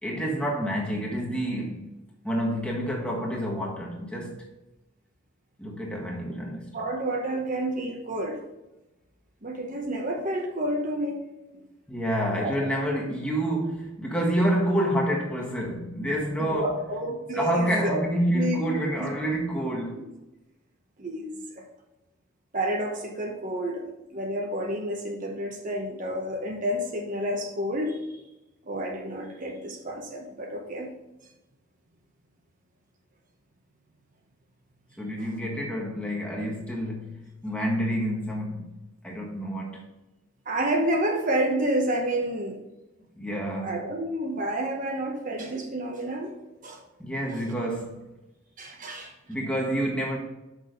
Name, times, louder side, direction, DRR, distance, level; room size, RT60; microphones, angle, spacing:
voice 1, 0.0-4.4 5.6-6.9 11.9-16.9 17.3-20.0 35.0-39.9 43.2-44.0 47.0-48.0 49.3-50.2, equal, 5° left, 1.4 m, -28 dB
voice 2, 6.7-8.4 9.4-11.2 11.5-11.6 12.4-12.7 16.4-18.0 18.3-19.1 19.9-20.0 21.0-21.3 21.5-21.7 22.5-23.8 24.1-28.0 28.7-30.9 35.2-35.3 40.5-42.6 43.6-46.4 46.6-46.8 47.3-47.4 48.6-49.1, right 1 dB, 40° right, 0.9 m, -29 dB
6.3 x 6.0 x 5.2 m
head